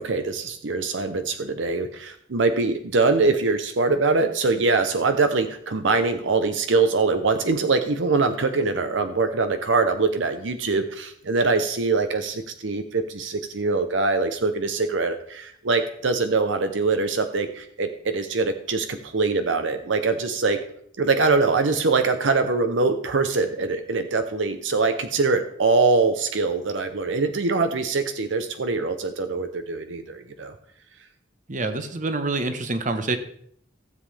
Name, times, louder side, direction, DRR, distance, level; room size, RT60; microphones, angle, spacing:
voice 1, 0.0-20.6 21.0-30.5, right 3 dB, 75° right, 8 dB, 0.7 m, -23 dB
voice 2, 31.5-33.2, right 3 dB, 40° right, 9 dB, 1.0 m, -26 dB
15.5 x 7.5 x 3.3 m, 0.65 s
head